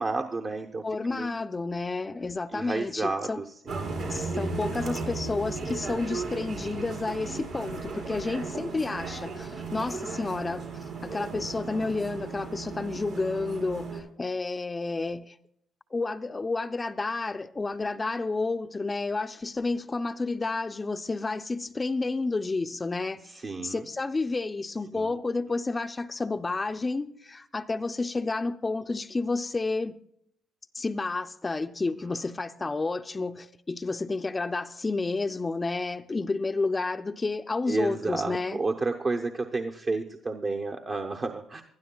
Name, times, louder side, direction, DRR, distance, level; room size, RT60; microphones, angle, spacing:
voice 1, 0.0-1.3 2.5-3.9 8.5-9.0 23.2-23.9 24.9-25.2 32.0-32.2 37.7-41.6, right 3 dB, 40° right, 0.8 m, -32 dB
voice 2, 0.8-3.4 4.1-10.7 11.0-15.4 15.9-30.0 30.7-38.6, left 3 dB, 30° left, 0.5 m, -30 dB
sound 1, 3.7-14.0, right 4 dB, 80° right, 4.3 m, -35 dB
20.0 x 12.0 x 2.3 m
hypercardioid pair, 55°, 0 cm